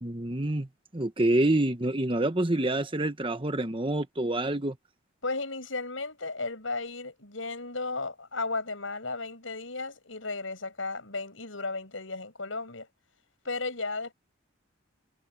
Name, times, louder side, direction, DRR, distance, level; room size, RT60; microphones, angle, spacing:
voice 1, 0.0-4.8, right 1 dB, 25° right, 1.3 m, -27 dB
voice 2, 5.2-12.9 13.4-14.1, left 3 dB, 80° left, 6.7 m, -34 dB
head